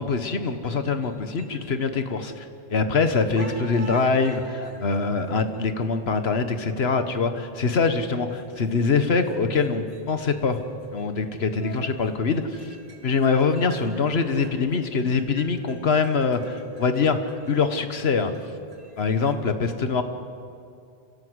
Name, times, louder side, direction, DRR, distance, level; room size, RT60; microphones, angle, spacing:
voice 1, 0.0-10.6 10.9-12.7 13.0-17.2 17.5-18.3 19.0-20.0, left 4 dB, 80° left, 9 dB, 1.5 m, -24 dB
sound 1, 1.0-3.0 3.3-19.4, right 2 dB, 75° right, 4.3 m, -46 dB
26.5 x 17.5 x 8.0 m, 2.5 s
omnidirectional pair, 1.0 m